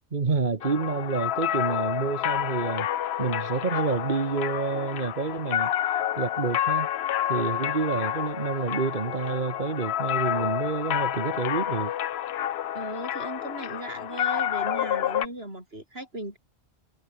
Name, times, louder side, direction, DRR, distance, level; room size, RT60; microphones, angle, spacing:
voice 1, 0.1-2.9 3.2-5.7 6.2-6.9 7.3-11.9, right 4 dB, 50° right, 1.5 m, -28 dB
sound 1, 0.6-15.3, left 11 dB, 75° left, 0.9 m, -29 dB
voice 2, 12.7-16.4, right 1 dB, 70° right, 8.4 m, -37 dB
omnidirectional pair, 1.1 m